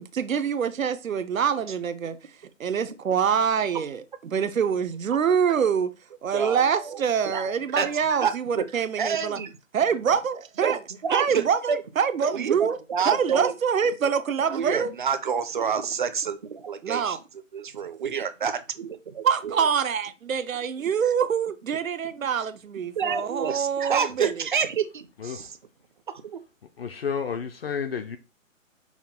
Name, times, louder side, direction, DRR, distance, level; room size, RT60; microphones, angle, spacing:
voice 1, 0.0-5.9 6.2-9.4 9.7-10.8 11.1-12.8 13.1-14.9 16.8-17.2 19.2-24.5, right 7 dB, 90° right, 0.7 m, -25 dB
voice 2, 6.3-7.5 7.7-8.7 9.0-9.5 10.6-11.8 12.3-13.5 14.5-17.2 17.5-19.6 23.0-25.6 26.1-26.4, right 7 dB, 40° right, 0.4 m, -28 dB
voice 3, 25.2-25.5 26.8-28.2, left 6 dB, 50° left, 0.4 m, -31 dB
5.7 x 2.2 x 4.2 m
hypercardioid pair, 150°, 40 cm